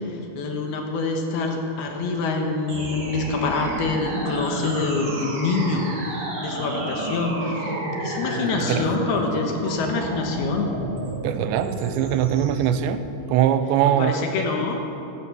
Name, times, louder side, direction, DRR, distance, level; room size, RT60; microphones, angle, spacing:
voice 1, 0.0-6.1 6.4-10.7 14.0-14.8, left 3 dB, 70° left, 2 dB, 2.9 m, -26 dB
sound 1, 2.7-12.7, equal, 50° right, 4.1 m, -31 dB
voice 2, 11.2-14.2, right 10 dB, 85° right, 10 dB, 2.8 m, -22 dB
15.0 x 13.0 x 6.0 m, 2.9 s
omnidirectional pair, 5.1 m